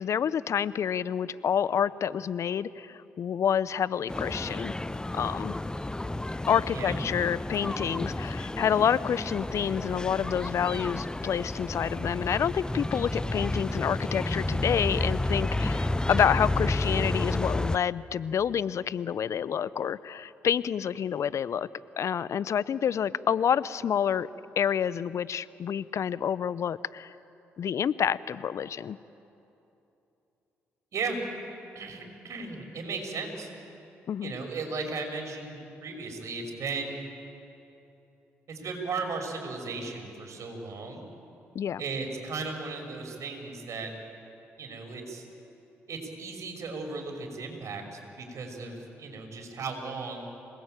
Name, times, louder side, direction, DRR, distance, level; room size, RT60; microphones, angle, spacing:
voice 1, 0.0-4.8 5.1-5.6 6.5-21.7 22.0-24.3 24.6-27.1 27.6-29.0 34.1-34.3 41.5-41.8, left 8 dB, 60° left, 18 dB, 0.6 m, -28 dB
sound 1, 4.1-17.8, left 2 dB, 15° left, 0.7 m, -31 dB
voice 2, 31.7-33.5 34.2-37.0 38.5-41.0 41.8-43.9 44.6-45.3 45.9-50.3, right 4 dB, 60° right, 3 dB, 5.5 m, -36 dB
27.0 x 19.0 x 9.0 m, 2.9 s
hypercardioid pair, 50°, 6 cm